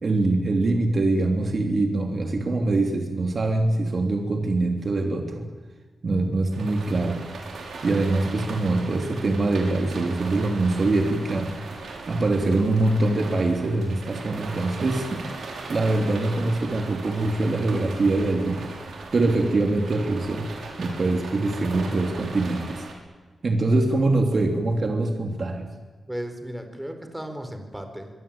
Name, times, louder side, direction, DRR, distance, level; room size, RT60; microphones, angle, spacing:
voice 1, 0.0-5.5 6.0-7.2 7.8-11.5 12.1-18.6 19.1-20.4 20.8-22.8 23.4-25.7, right 2 dB, 40° right, 3 dB, 3.4 m, -23 dB
sound 1, 6.5-22.9, right 4 dB, 80° right, 6.2 m, -39 dB
voice 2, 26.1-28.1, equal, 5° right, 6 dB, 4.5 m, -35 dB
26.0 x 23.0 x 9.0 m, 1.4 s
wide cardioid pair, 120°, 0 cm